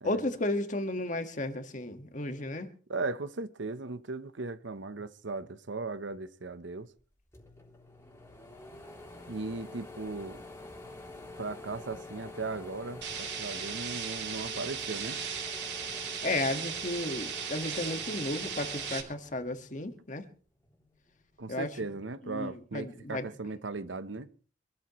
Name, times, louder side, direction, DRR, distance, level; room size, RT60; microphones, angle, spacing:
voice 1, 0.0-2.7 16.2-20.3 21.5-21.7 22.2-23.3, left 2 dB, 45° left, 1.7 m, -33 dB
voice 2, 2.9-6.9 9.3-10.4 11.4-15.2 21.4-24.3, right 3 dB, 85° right, 1.0 m, -37 dB
sound 1, 7.0-7.1 7.3-19.9 20.4-21.5, left 2 dB, 15° left, 3.3 m, -47 dB
sound 2, 13.0-19.0, right 7 dB, 65° right, 2.9 m, -37 dB
25.5 x 13.0 x 3.1 m
head